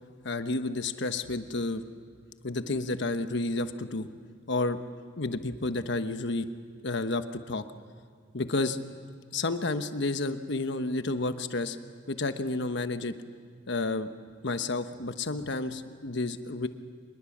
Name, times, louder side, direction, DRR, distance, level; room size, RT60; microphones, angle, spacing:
voice 1, 0.2-1.8 2.4-4.1 4.5-4.8 5.2-6.5 6.8-7.6 8.3-8.8 9.3-11.8 12.1-13.1 13.7-14.1 14.4-16.7, left 2 dB, 65° left, 9 dB, 1.1 m, -30 dB
25.5 x 21.0 x 7.3 m, 2.1 s
head